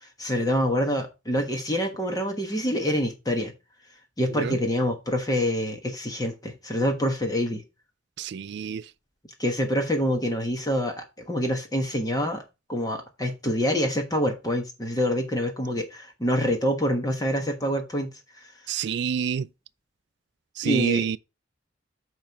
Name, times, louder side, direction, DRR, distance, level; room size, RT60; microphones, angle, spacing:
voice 1, 0.0-3.5 4.2-7.6 9.4-12.4 12.7-18.8 20.6-21.0, equal, 20° left, 1.2 m, -26 dB
voice 2, 8.2-8.8 18.7-19.5 20.6-21.2, right 7 dB, 60° right, 0.3 m, -27 dB
8.8 x 3.2 x 5.7 m
head